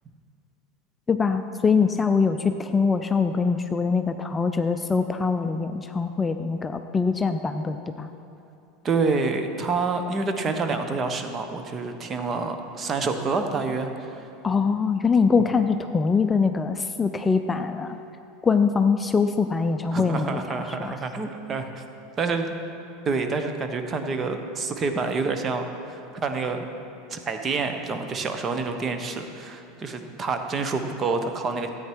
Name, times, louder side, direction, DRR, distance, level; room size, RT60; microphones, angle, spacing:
voice 1, 1.1-8.1 14.4-18.0 18.4-21.0, left 5 dB, 20° left, 8 dB, 0.5 m, -23 dB
voice 2, 8.8-14.3 19.9-21.8 22.2-22.5 23.1-26.7 27.1-31.7, right 4 dB, 30° right, 6 dB, 1.2 m, -28 dB
13.5 x 9.0 x 4.8 m, 2.8 s
hypercardioid pair, 85°, 0 cm